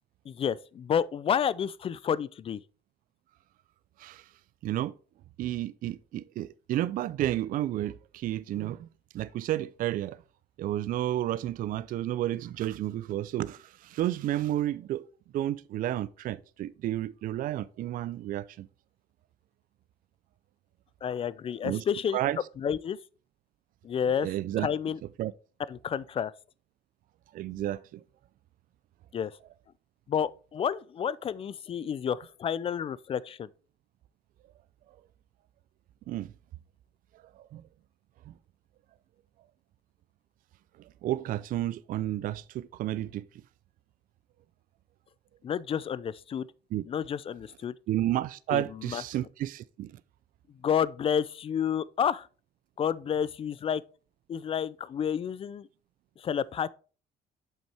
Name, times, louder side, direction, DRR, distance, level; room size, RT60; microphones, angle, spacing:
voice 1, 0.3-2.6 21.0-22.2 22.6-23.0 23.8-24.3 24.6-25.0 25.7-26.3 29.1-29.3 30.1-33.5 45.4-46.5 46.9-47.7 48.5-49.0 50.6-52.3 52.8-53.8 54.3-55.7 56.2-56.7, left 8 dB, 35° left, 0.3 m, -30 dB
voice 2, 4.6-4.9 5.4-8.9 9.1-10.2 10.6-15.0 15.3-18.7 21.6-21.8 22.1-22.4 24.2-24.7 25.2-25.3 27.3-28.0 36.1-36.3 37.4-37.6 38.3-38.4 40.8-43.2 46.7-46.8 47.9-49.9, right 13 dB, 55° right, 0.4 m, -31 dB
7.4 x 5.5 x 3.3 m
cardioid pair, 110°, 17 cm